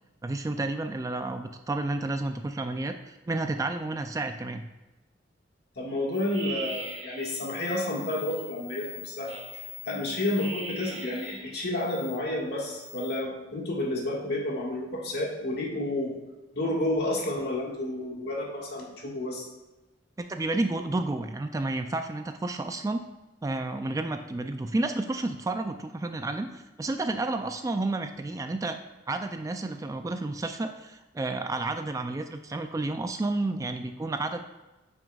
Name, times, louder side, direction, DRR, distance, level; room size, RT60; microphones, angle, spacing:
voice 1, 0.2-4.6 20.2-23.0 23.4-28.8 29.1-34.4, right 2 dB, 20° right, 7 dB, 0.3 m, -31 dB
voice 2, 5.7-9.4 9.8-16.2 16.5-19.5, left 1 dB, 60° left, -2 dB, 1.7 m, -30 dB
sound 1, 6.1-12.2 12.6-13.2, equal, 75° right, 1.5 m, -41 dB
8.9 x 6.0 x 2.3 m, 1.1 s
head